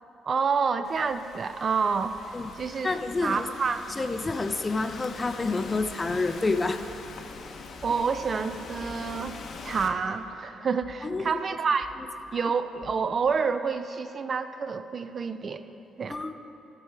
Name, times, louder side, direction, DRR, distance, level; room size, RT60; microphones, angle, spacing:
voice 1, 0.2-2.1 2.6-3.9 7.8-9.4 9.6-11.9 12.3-15.6 16.0-16.2, right 5 dB, 45° right, 10 dB, 0.3 m, -28 dB
Thunderstorm / Rain, 0.8-9.9, left 4 dB, 65° left, 0.7 m, -43 dB
voice 2, 2.8-3.5 4.0-6.8 11.0-11.4 12.3-12.4 16.1-16.4, left 3 dB, 25° left, 9 dB, 0.4 m, -28 dB
sound 1, 5.8-6.9 7.2-7.4 7.8-7.9 8.4-9.5 9.8-13.8, equal, 15° right, 1.5 m, -53 dB
12.0 x 4.7 x 4.5 m, 2.9 s
cardioid pair, 90°, 0 cm